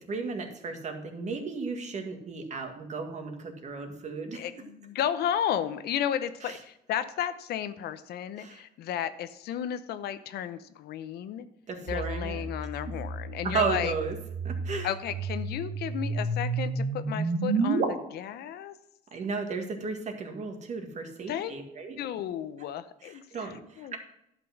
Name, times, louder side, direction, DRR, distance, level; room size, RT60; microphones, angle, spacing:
voice 1, 0.0-4.4 6.4-6.6 8.4-8.6 11.7-12.4 12.9-13.0 13.4-14.2 14.4-14.9 19.1-22.0 23.0-24.0, right 4 dB, 45° right, 4 dB, 1.9 m, -34 dB
voice 2, 4.3-11.5 11.8-13.9 14.8-18.7 21.3-21.5 22.0-24.0, left 10 dB, 70° left, 12 dB, 0.8 m, -33 dB
sound 1, 11.9-17.8, right 3 dB, 70° right, 1.9 m, -31 dB
11.0 x 6.0 x 5.9 m, 0.79 s
cardioid pair, 110°, 17 cm